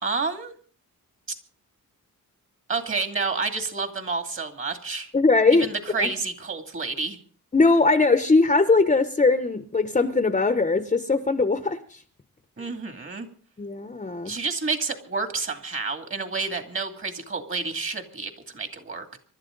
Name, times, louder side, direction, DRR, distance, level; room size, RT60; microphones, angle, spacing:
voice 1, 0.0-0.5 2.7-5.1 5.5-7.2 12.6-13.3 14.3-19.2, right 4 dB, 40° right, 6 dB, 2.5 m, -29 dB
voice 2, 5.1-5.7 6.0-6.1 7.5-12.0 13.6-14.3, left 3 dB, 20° left, 9 dB, 0.9 m, -20 dB
26.5 x 12.5 x 3.9 m, 0.43 s
wide cardioid pair, 155°, 33 cm